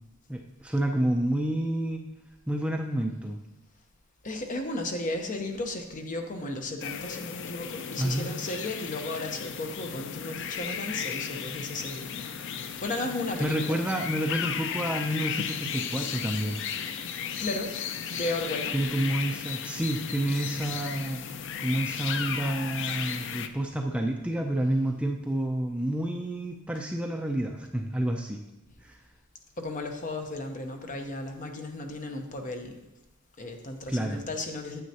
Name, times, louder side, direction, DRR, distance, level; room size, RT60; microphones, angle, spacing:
voice 1, 0.3-2.1 2.5-3.4 8.0-8.3 13.4-16.6 18.7-21.2 21.6-28.4 28.8-29.0 33.9-34.2, right 1 dB, 5° right, 1 dB, 0.4 m, -29 dB
voice 2, 4.2-12.3 12.8-13.8 17.4-17.7 18.1-18.8 20.7-20.8 21.4-21.5 23.4-23.5 29.6-32.8 33.4-34.8, left 2 dB, 35° left, 4 dB, 0.8 m, -34 dB
sound 1, 6.8-23.5, left 7 dB, 55° left, 0.5 m, -35 dB
9.3 x 8.2 x 2.8 m, 0.92 s
head